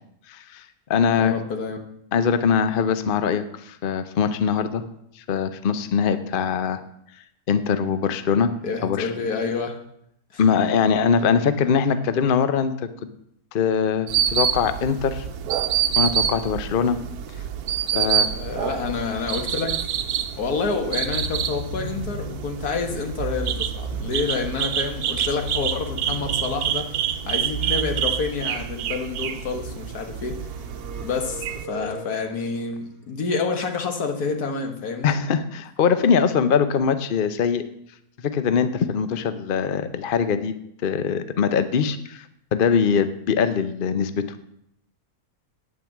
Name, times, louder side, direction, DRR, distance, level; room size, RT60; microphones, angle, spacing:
voice 1, 0.3-0.6 0.9-1.4 2.1-4.8 5.3-6.8 7.5-8.5 8.8-9.1 10.4-12.9 13.5-15.2 16.0-17.0 17.9-18.3 35.0-37.6 38.2-40.5 40.8-42.2 42.5-44.2, left 6 dB, 45° left, 11 dB, 0.8 m, -22 dB
voice 2, 1.2-1.8 8.6-9.8 10.3-10.4 17.6-19.8 20.4-26.9 27.3-30.4 31.0-35.2, left 4 dB, 85° left, 5 dB, 2.0 m, -28 dB
sound 1, 14.1-31.6, right 9 dB, 80° right, 1.3 m, -27 dB
sound 2, 21.0-28.2, right 1 dB, 30° left, 3.8 m, -35 dB
sound 3, 30.2-32.6, right 3 dB, 45° right, 1.4 m, -39 dB
9.5 x 9.1 x 7.4 m, 0.75 s
omnidirectional pair, 1.6 m